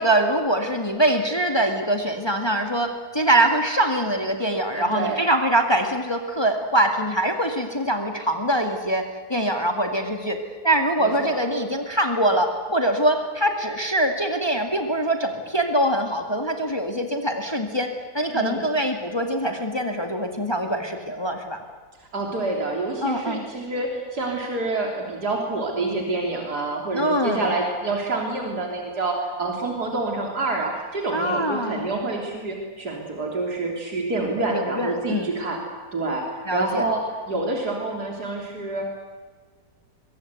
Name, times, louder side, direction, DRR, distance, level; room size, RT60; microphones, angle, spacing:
voice 1, 0.0-21.6 23.0-23.5 26.9-27.5 31.1-31.9 34.5-35.3 36.5-36.9, right 1 dB, 15° left, 4 dB, 2.1 m, -23 dB
voice 2, 4.7-5.2 11.0-11.4 18.3-18.6 22.1-35.6 35.9-38.9, right 2 dB, 85° right, 0 dB, 3.9 m, -27 dB
24.0 x 23.0 x 8.3 m, 1.5 s
omnidirectional pair, 1.7 m